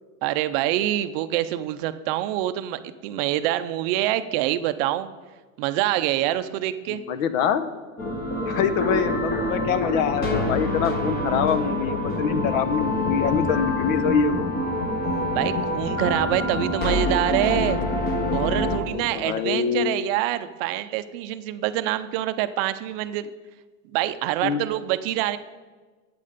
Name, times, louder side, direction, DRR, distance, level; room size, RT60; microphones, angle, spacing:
voice 1, 0.2-5.1 5.6-7.0 15.3-17.8 18.3-23.3 23.9-25.4, right 13 dB, 45° right, 12 dB, 0.5 m, -25 dB
voice 2, 6.9-7.7 8.4-14.5 18.9-19.9 24.4-24.6, left 7 dB, 75° left, 13 dB, 0.9 m, -25 dB
sound 1, 8.0-18.8, left 1 dB, 25° left, 1.1 m, -26 dB
8.6 x 8.5 x 5.0 m, 1.3 s
supercardioid pair, 160°, 40 cm